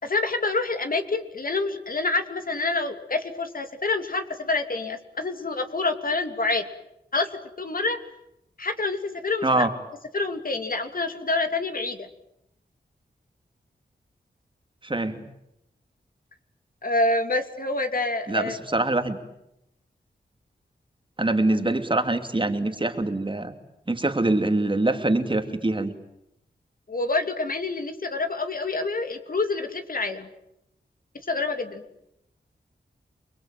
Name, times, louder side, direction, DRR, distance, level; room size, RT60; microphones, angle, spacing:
voice 1, 0.0-6.6 7.1-7.3 7.6-8.0 8.6-9.7 10.1-12.1 16.8-18.6 26.9-30.3 31.3-31.8, left 3 dB, 55° left, 7 dB, 2.9 m, -27 dB
voice 2, 14.8-15.2 18.3-19.2 21.2-23.5 23.9-25.9, right 2 dB, 30° right, 7 dB, 2.8 m, -24 dB
29.0 x 22.0 x 9.1 m, 0.82 s
wide cardioid pair, 85°, 18 cm